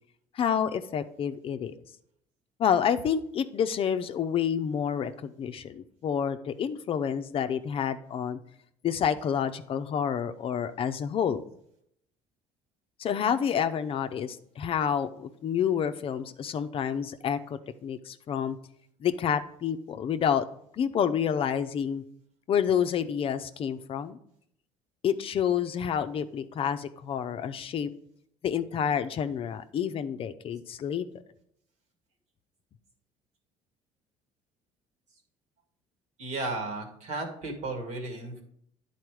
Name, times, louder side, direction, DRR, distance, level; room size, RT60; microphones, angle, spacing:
voice 1, 0.3-1.7 2.6-8.4 8.8-11.4 13.0-18.6 19.0-20.4 20.8-22.0 22.5-24.2 25.0-27.9 28.4-31.0, left 8 dB, 45° left, 10 dB, 0.5 m, -29 dB
voice 2, 36.2-38.4, right 2 dB, 65° right, 4 dB, 1.9 m, -34 dB
9.7 x 4.2 x 4.7 m, 0.71 s
supercardioid pair, 95°, 13 cm